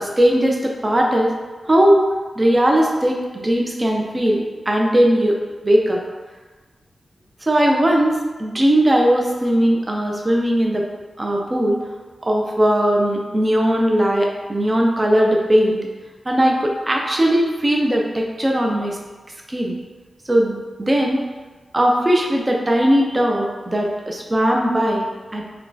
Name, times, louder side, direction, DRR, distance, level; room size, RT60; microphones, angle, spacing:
voice 1, 0.0-1.3 1.6-2.0 2.4-5.4 5.6-6.0 7.4-10.8 11.2-11.8 12.2-15.8 16.2-19.0 19.5-19.8 20.3-21.2 21.7-25.4, equal, 20° right, 0 dB, 0.5 m, -18 dB
4.9 x 2.2 x 2.7 m, 1.3 s
wide cardioid pair, 155°, 0 cm